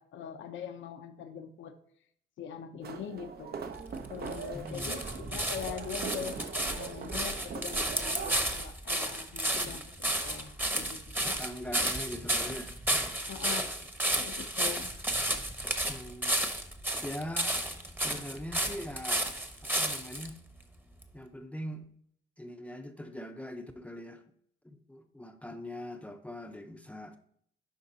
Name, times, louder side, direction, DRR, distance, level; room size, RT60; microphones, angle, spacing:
voice 1, 0.0-1.7 2.4-3.5 4.1-9.8 10.2-11.3 11.8-11.9 13.3-13.7 14.2-14.9, left 8 dB, 70° left, 7 dB, 0.7 m, -42 dB
sound 1, 2.8-8.4, right 6 dB, 55° right, 0.7 m, -41 dB
sound 2, 3.7-20.3 21.0-21.1, right 1 dB, 10° right, 0.9 m, -32 dB
voice 2, 4.5-5.1 10.0-10.1 11.2-12.7 15.9-16.4 17.0-17.6 18.0-19.3 19.6-20.4 21.1-21.9 22.4-24.2 24.6-27.2, left 1 dB, 5° left, 6 dB, 0.6 m, -42 dB
11.0 x 3.8 x 2.7 m, 0.66 s
cardioid pair, 90°, 20 cm